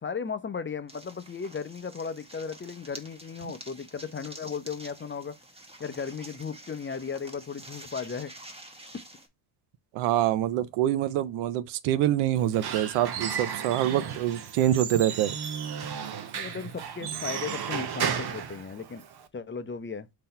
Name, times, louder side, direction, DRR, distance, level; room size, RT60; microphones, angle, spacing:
voice 1, 0.0-5.3 5.8-8.3 16.3-19.0 19.3-20.1, left 6 dB, 25° left, 0.6 m, -36 dB
sound 1, 0.9-9.3, right 1 dB, 10° right, 1.1 m, -48 dB
voice 2, 9.9-15.3, right 12 dB, 80° right, 0.6 m, -25 dB
Squeak / Wood, 12.4-19.3, right 7 dB, 50° right, 0.8 m, -34 dB
3.8 x 2.9 x 4.3 m
supercardioid pair, 65°, 49 cm